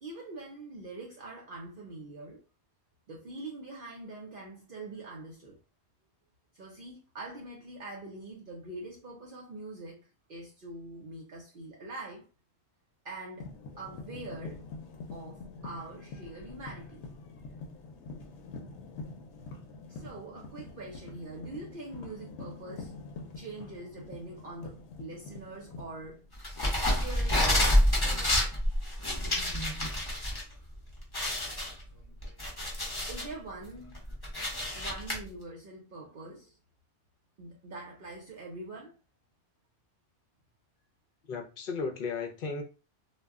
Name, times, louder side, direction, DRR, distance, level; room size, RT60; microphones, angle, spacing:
voice 1, 0.0-2.4 3.1-5.6 6.5-12.3 13.0-13.5 13.8-14.7 15.1-17.1 19.9-22.9 23.3-26.2 26.8-27.5 33.1-34.0 34.7-36.6 37.4-38.9, right 2 dB, 55° right, 0.8 m, -44 dB
sound 1, 13.4-26.9 27.1-27.6 29.3-29.5 31.4-32.0, left 3 dB, 85° left, 0.9 m, -45 dB
sound 2, 26.4-30.4 30.7-30.8 31.1-33.3 33.8-35.2, left 1 dB, 25° left, 0.7 m, -28 dB
voice 2, 41.3-42.6, left 4 dB, 60° left, 0.7 m, -35 dB
2.3 x 2.1 x 3.5 m
omnidirectional pair, 1.1 m